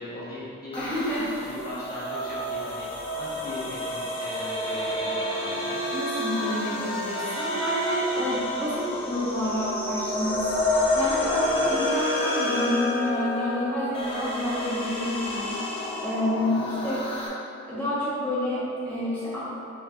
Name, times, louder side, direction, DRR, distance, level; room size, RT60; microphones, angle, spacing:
voice 1, 0.0-0.8 1.4-2.9 3.2-5.8 11.6-11.7 16.4-16.6, left 1 dB, 45° left, -10 dB, 1.4 m, -39 dB
sound 1, 0.7-17.3, left 1 dB, 25° left, 0.5 m, -29 dB
voice 2, 0.8-1.5 5.9-15.7 16.0-17.0 17.7-19.4, equal, 10° left, -11 dB, 1.1 m, -29 dB
6.6 x 3.2 x 2.4 m, 2.6 s
head